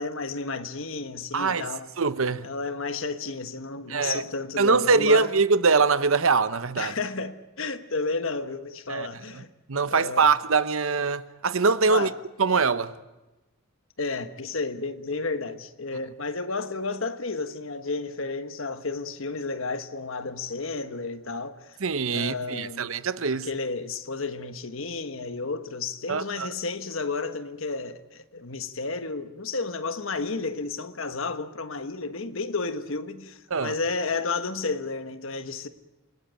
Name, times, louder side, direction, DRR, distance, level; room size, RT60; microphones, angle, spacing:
voice 1, 0.0-1.9 2.4-5.3 6.8-9.5 9.9-10.3 11.9-12.1 14.0-21.8 22.1-22.9 23.3-35.7, left 3 dB, 65° left, 1.4 m, -32 dB
voice 2, 1.3-1.7 2.0-2.5 3.9-4.2 4.6-6.9 8.9-9.1 9.7-12.1 12.4-12.9 21.8-23.5 26.1-26.5 33.5-33.7, right 4 dB, 70° right, 0.9 m, -23 dB
27.5 x 19.0 x 9.0 m
head